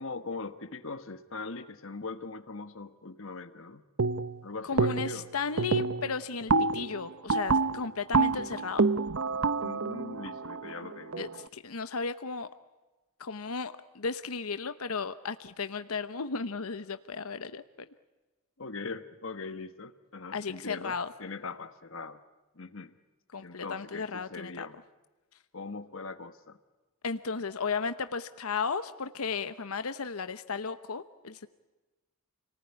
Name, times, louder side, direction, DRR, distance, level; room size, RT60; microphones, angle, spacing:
voice 1, 0.0-3.8 4.4-5.3 9.6-11.2 18.6-22.2 22.6-22.9 23.4-24.8 25.5-26.6, left 3 dB, 60° left, 10 dB, 1.3 m, -41 dB
sound 1, 4.0-4.4 4.8-5.3 5.6-11.4, right 4 dB, 60° right, 0.8 m, -28 dB
voice 2, 4.6-8.9 11.2-12.5 13.2-17.9 20.3-21.1 23.3-24.7 27.0-31.5, left 5 dB, 80° left, 11 dB, 0.9 m, -35 dB
29.5 x 19.5 x 9.8 m, 1.2 s
head